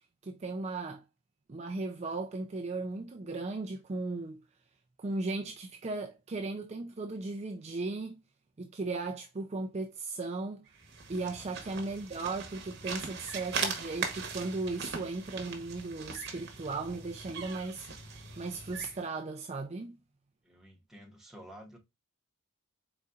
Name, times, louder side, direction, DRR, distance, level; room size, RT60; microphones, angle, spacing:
voice 1, 0.2-1.0 1.5-4.4 5.0-8.2 8.6-10.6 11.1-17.9 18.4-20.0, right 3 dB, 30° right, 0.4 m, -36 dB
sound 1, 10.7-19.0, right 5 dB, 55° right, 1.1 m, -40 dB
voice 2, 20.4-21.8, equal, ahead, 1.1 m, -51 dB
4.2 x 4.0 x 2.3 m
head